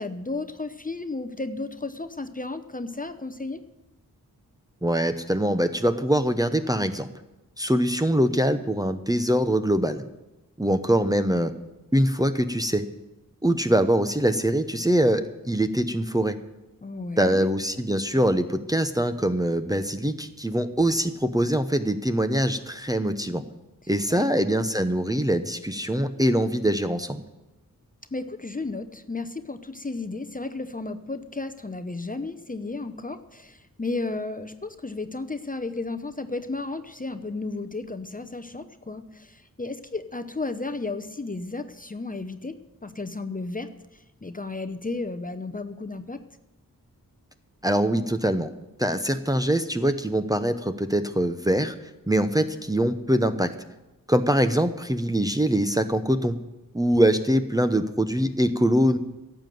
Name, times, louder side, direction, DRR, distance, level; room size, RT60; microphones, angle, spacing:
voice 1, 0.0-3.6 16.8-17.5 24.1-24.3 28.1-46.2, left 3 dB, 25° left, 9 dB, 0.7 m, -33 dB
voice 2, 4.8-7.1 7.6-10.0 10.6-11.5 11.9-12.9 13.4-16.4 17.2-23.4 23.9-27.2 47.6-48.5 48.8-51.7 52.1-53.5 54.1-56.4 56.7-59.0, right 1 dB, 10° right, 7 dB, 0.8 m, -23 dB
12.0 x 7.8 x 9.2 m, 1.0 s
wide cardioid pair, 60°, 35 cm